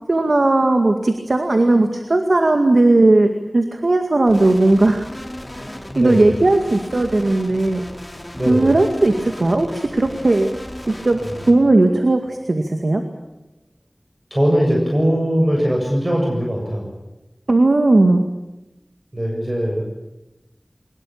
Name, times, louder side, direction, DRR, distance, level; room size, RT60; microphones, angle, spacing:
voice 1, 0.1-5.1 6.0-7.9 8.5-10.5 10.9-11.2 11.5-13.0 17.5-18.2, right 2 dB, 85° right, 5 dB, 2.1 m, -16 dB
sound 1, 4.3-11.5, left 1 dB, 15° left, 4.9 m, -35 dB
voice 2, 5.9-6.3 8.4-8.7 14.3-16.9 19.1-19.8, equal, 30° right, 0 dB, 7.5 m, -20 dB
23.5 x 21.0 x 8.7 m, 0.98 s
wide cardioid pair, 45°, 0 cm